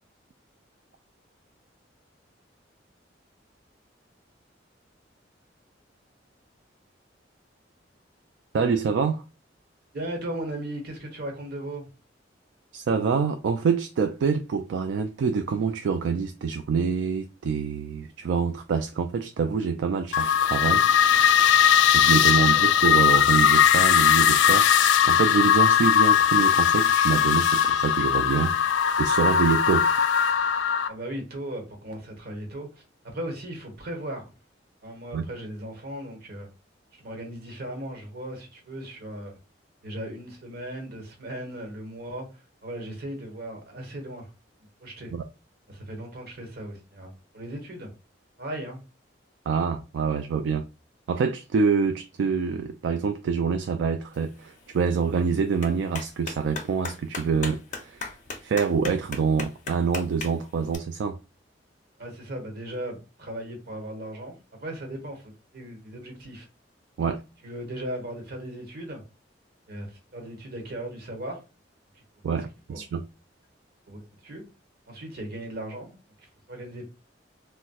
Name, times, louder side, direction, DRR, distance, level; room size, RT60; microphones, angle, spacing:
voice 1, 8.5-9.2 12.7-20.9 21.9-28.6 29.0-29.9 35.1-35.2 45.1-45.2 49.5-50.6 51.1-58.1 58.4-61.2 67.0-67.2 72.2-73.0, right 5 dB, 75° right, 0.3 m, -26 dB
voice 2, 9.9-11.9 22.5-22.6 30.9-32.8 33.1-34.2 34.8-36.5 36.9-39.4 39.8-44.3 44.8-45.1 45.7-47.9 48.4-48.8 62.0-66.5 67.4-69.0 69.7-71.4 71.9-72.0 72.7-72.8 73.9-74.4 74.9-76.9, right 1 dB, 60° right, 1.1 m, -37 dB
sound 1, 20.1-30.9, left 8 dB, 80° left, 0.3 m, -19 dB
Clapping, 54.1-60.8, left 4 dB, 40° left, 0.6 m, -40 dB
4.1 x 2.1 x 2.3 m
head